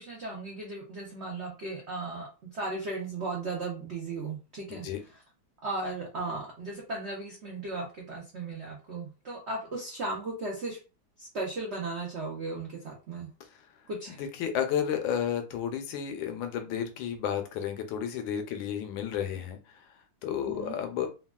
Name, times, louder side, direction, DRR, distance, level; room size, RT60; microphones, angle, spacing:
voice 1, 0.0-4.9 5.6-10.8 11.2-13.3 13.9-14.2 20.5-20.8, right 3 dB, 80° right, -1 dB, 0.6 m, -36 dB
voice 2, 14.2-21.1, left 9 dB, 80° left, 6 dB, 1.3 m, -32 dB
3.4 x 2.3 x 2.2 m, 0.31 s
omnidirectional pair, 2.2 m